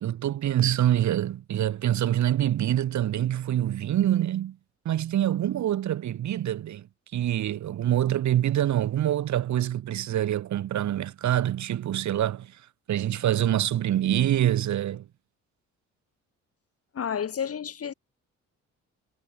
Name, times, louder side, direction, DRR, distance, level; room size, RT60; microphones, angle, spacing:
voice 1, 0.0-4.6 4.9-6.9 7.1-12.6 12.9-15.1, right 12 dB, 70° right, 2.1 m, -25 dB
voice 2, 16.9-17.9, left 8 dB, 50° left, 3.9 m, -30 dB
cardioid pair, 90°, 30 cm